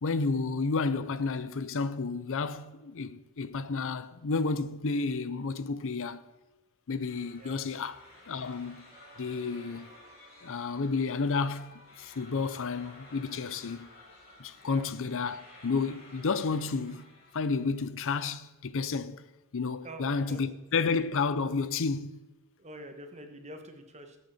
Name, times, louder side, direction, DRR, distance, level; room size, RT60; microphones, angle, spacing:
voice 1, 0.0-6.2 6.9-8.9 9.2-9.9 10.4-13.9 14.4-19.2 19.5-22.2, left 4 dB, 60° left, 0.6 m, -31 dB
sound 1, 7.0-17.7, left 1 dB, 45° left, 4.6 m, -54 dB
voice 2, 19.8-20.4 22.6-24.2, right 1 dB, 30° right, 1.5 m, -46 dB
18.0 x 8.1 x 4.4 m
head